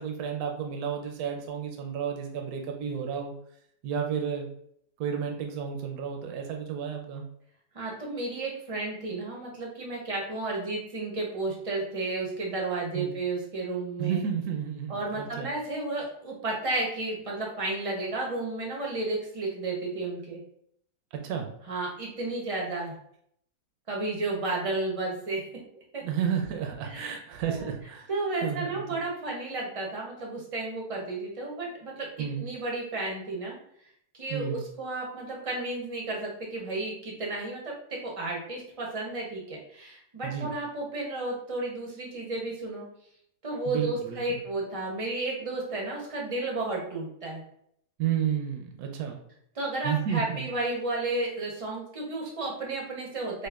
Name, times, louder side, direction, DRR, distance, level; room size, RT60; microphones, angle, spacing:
voice 1, 0.0-3.3 3.8-4.5 5.0-7.2 12.9-13.1 14.0-15.5 21.1-21.5 26.0-28.1 28.4-29.0 32.2-32.5 34.3-34.6 40.2-40.5 43.7-44.4 48.0-49.2 49.8-50.5, right 8 dB, 75° right, 3 dB, 1.0 m, -32 dB
voice 2, 7.7-14.2 14.9-20.4 21.7-22.9 23.9-25.4 25.9-26.0 26.8-27.2 27.5-27.7 28.1-33.6 34.1-37.7 38.0-42.8 43.4-47.4 49.5-53.5, right 2 dB, 40° right, -2 dB, 0.5 m, -32 dB
5.1 x 2.2 x 2.4 m, 0.68 s
omnidirectional pair, 1.8 m